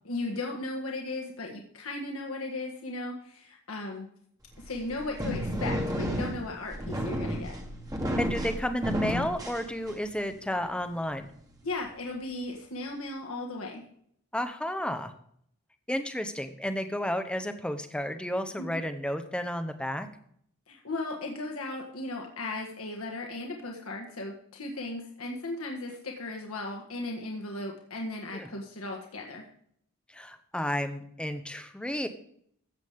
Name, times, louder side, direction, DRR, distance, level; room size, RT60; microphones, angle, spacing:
voice 1, 0.0-4.1 4.6-7.5 11.6-13.8 18.6-18.8 20.7-29.5, left 2 dB, 75° left, 0 dB, 1.6 m, -36 dB
sound 1, 4.6-10.2, equal, 15° right, 1.4 m, -32 dB
voice 2, 8.2-11.3 14.3-15.1 15.9-20.1 28.3-28.5 30.1-32.1, equal, 5° left, 8 dB, 0.8 m, -32 dB
14.5 x 8.2 x 3.6 m, 0.66 s
head